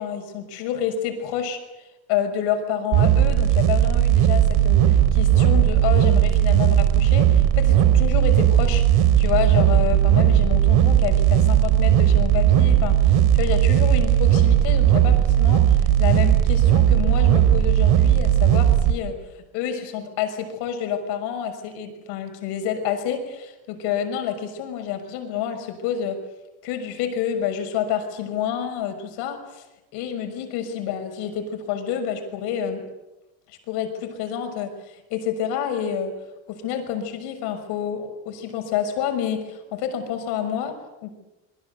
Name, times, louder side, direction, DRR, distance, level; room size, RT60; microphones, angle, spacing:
voice 1, 0.0-19.2 19.5-26.2 26.6-29.6 29.9-32.9 33.5-36.2 36.5-41.1, left 8 dB, 70° left, 6 dB, 6.3 m, -28 dB
sound 1, 2.9-18.9, right 11 dB, 60° right, 3.0 m, -17 dB
27.5 x 22.5 x 8.2 m, 0.99 s
cardioid pair, 130°, 41 cm